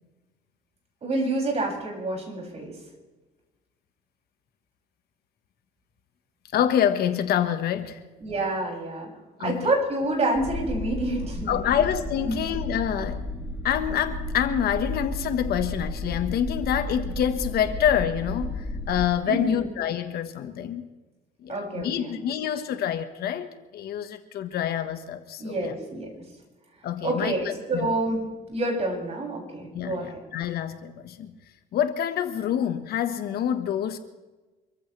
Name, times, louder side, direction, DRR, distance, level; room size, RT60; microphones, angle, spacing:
voice 1, 1.0-2.7 8.2-9.1 9.4-11.6 12.2-12.4 19.2-19.6 21.5-22.2 25.4-26.1 27.0-28.2 28.5-30.2, right 2 dB, 40° right, -1 dB, 7.1 m, -28 dB
voice 2, 6.5-8.0 9.4-9.7 11.5-13.2 13.6-20.8 21.4-25.8 26.8-28.2 29.7-31.3 31.7-34.0, left 9 dB, 70° left, 8 dB, 1.5 m, -27 dB
sound 1, 10.3-19.1, left 1 dB, 10° right, 3.1 m, -33 dB
26.0 x 15.0 x 3.4 m, 1.2 s
cardioid pair, 110°, 17 cm